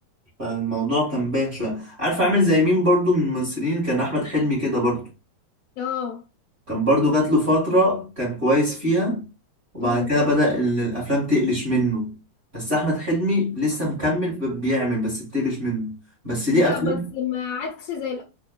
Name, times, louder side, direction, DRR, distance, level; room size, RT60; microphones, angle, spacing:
voice 1, 0.4-5.1 6.7-9.2 9.7-12.1 12.5-15.9 16.2-17.0, equal, 50° right, 0.7 m, -22 dB
voice 2, 5.8-6.2 9.8-10.1 16.5-18.2, left 8 dB, 75° left, 2.1 m, -29 dB
5.8 x 2.2 x 2.2 m
omnidirectional pair, 4.4 m